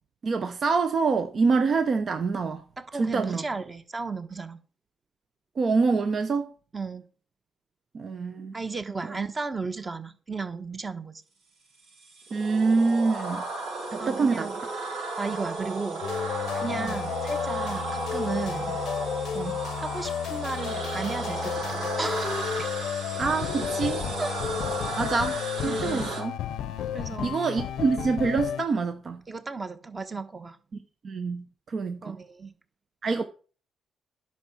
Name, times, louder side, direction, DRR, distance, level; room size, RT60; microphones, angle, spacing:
voice 1, 0.2-2.6 3.0-3.4 5.6-6.5 7.9-8.5 12.3-13.4 13.9-14.5 16.8-16.9 19.3-19.6 23.2-24.0 25.0-26.3 27.2-29.2 31.0-32.2 33.0-33.2, right 4 dB, 50° right, 0.9 m, -26 dB
voice 2, 2.8-4.6 6.7-7.0 8.5-11.2 14.0-14.6 15.2-18.7 19.8-22.7 24.2-24.3 25.6-26.1 26.9-27.4 29.3-30.6 32.0-32.6, right 4 dB, 25° right, 1.3 m, -34 dB
sound 1, 11.9-26.2, right 3 dB, 85° right, 4.7 m, -34 dB
sound 2, 16.0-28.6, left 9 dB, 80° left, 0.7 m, -32 dB
10.5 x 5.8 x 6.2 m
cardioid pair, 90°, 0 cm